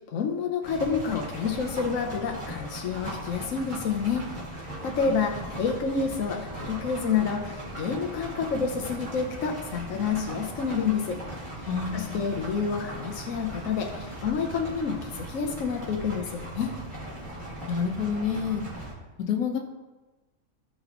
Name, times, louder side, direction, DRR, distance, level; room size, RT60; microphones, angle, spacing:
voice 1, 0.1-4.3 4.8-11.2 11.9-16.7, left 6 dB, 65° left, 1 dB, 1.2 m, -29 dB
sound 1, 0.6-18.9, right 1 dB, 30° right, 2.6 m, -38 dB
voice 2, 11.6-12.2 17.6-18.6 19.3-19.6, left 6 dB, 80° left, 3 dB, 1.6 m, -28 dB
16.0 x 5.4 x 3.0 m, 1.2 s
omnidirectional pair, 1.5 m